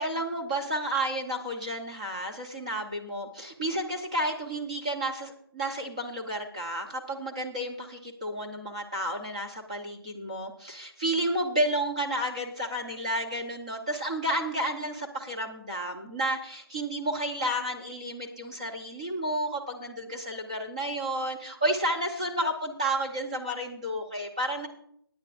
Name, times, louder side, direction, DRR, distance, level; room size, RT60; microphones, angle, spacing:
voice 1, 0.0-24.7, right 1 dB, 15° right, 0 dB, 0.7 m, -31 dB
18.0 x 9.5 x 2.5 m, 0.68 s
hypercardioid pair, 175°, 13 cm